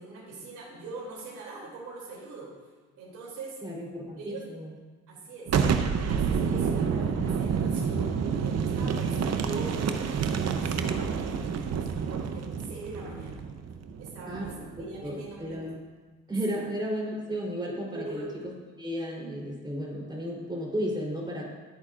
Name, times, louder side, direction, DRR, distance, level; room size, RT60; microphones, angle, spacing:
voice 1, 0.0-2.5 3.0-3.6 4.2-4.4 5.1-5.5 5.9-13.4 14.0-15.7 16.5-16.6 17.9-18.3, right 3 dB, 85° right, -5 dB, 3.1 m, -42 dB
voice 2, 3.6-4.7 14.3-15.7 16.3-18.2 18.8-21.4, equal, 15° right, -3 dB, 3.7 m, -34 dB
Boom, 5.5-15.0, right 6 dB, 60° right, 0.8 m, -28 dB
17.0 x 8.9 x 2.6 m, 1.4 s
cardioid pair, 90°, 30 cm